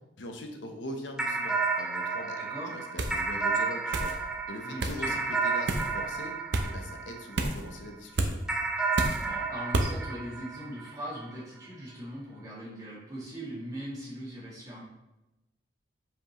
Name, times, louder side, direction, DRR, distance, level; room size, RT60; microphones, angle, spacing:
voice 1, 0.2-2.4 2.7-4.1 4.5-6.3 6.6-8.4, equal, 90° left, 4 dB, 0.9 m, -41 dB
sound 1, 1.2-7.8 8.5-11.2, right 4 dB, 5° right, 0.4 m, -32 dB
voice 2, 2.4-2.7 4.6-5.2 9.2-14.8, equal, 20° right, -6 dB, 2.2 m, -40 dB
sound 2, 3.0-3.2 3.9-4.2 4.8-5.0 5.7-5.9 6.5-6.7 7.4-7.6 8.2-8.3 9.0-9.2 9.7-9.9, right 2 dB, 75° right, 0.7 m, -29 dB
7.3 x 5.2 x 3.1 m, 0.97 s
head